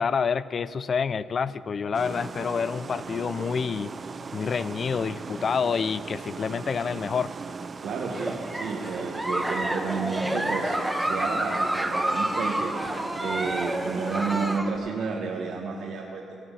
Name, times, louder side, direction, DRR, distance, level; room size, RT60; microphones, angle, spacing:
voice 1, 0.0-3.9 4.3-7.3, left 6 dB, 45° left, 17 dB, 0.4 m, -28 dB
sound 1, 1.9-14.6, right 4 dB, 35° right, 0.4 m, -38 dB
voice 2, 7.8-12.7 13.2-16.3, right 5 dB, 70° right, -1 dB, 1.2 m, -31 dB
Giggle, 8.1-14.8, right 1 dB, 10° right, 1.0 m, -29 dB
16.5 x 6.2 x 8.4 m, 2.5 s
cardioid pair, 90°, 0 cm